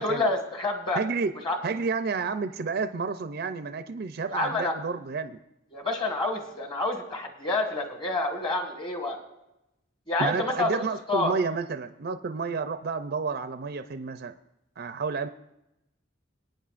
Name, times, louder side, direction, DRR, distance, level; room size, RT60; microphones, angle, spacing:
voice 1, 0.0-1.0 1.4-1.6 4.3-4.7 5.7-9.2 10.1-11.3, left 2 dB, 30° left, 4 dB, 1.8 m, -28 dB
voice 2, 1.0-1.3 1.6-5.4 10.2-14.3 14.8-15.3, right 4 dB, 55° right, 9 dB, 0.5 m, -30 dB
21.0 x 9.0 x 2.5 m, 0.89 s
head